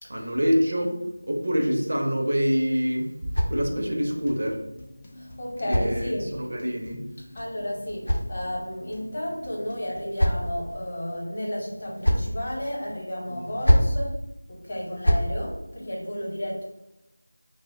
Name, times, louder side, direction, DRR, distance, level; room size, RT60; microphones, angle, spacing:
voice 1, 0.1-4.6 5.7-7.1 13.3-13.6, equal, 50° right, 0 dB, 0.5 m, -26 dB
sound 1, 2.4-4.1 5.1-6.5 7.5-8.9 9.7-10.7 11.7-12.4 13.4-14.0 14.8-15.3, equal, 85° left, 0.5 m, -27 dB
sound 2, 3.8-10.0, left 1 dB, 15° left, 0.3 m, -47 dB
voice 2, 5.1-6.3 7.3-14.2 14.5-16.6, equal, 35° left, -4 dB, 0.8 m, -32 dB
2.8 x 2.0 x 3.8 m, 0.92 s
figure-of-eight pair, 175°, 0 cm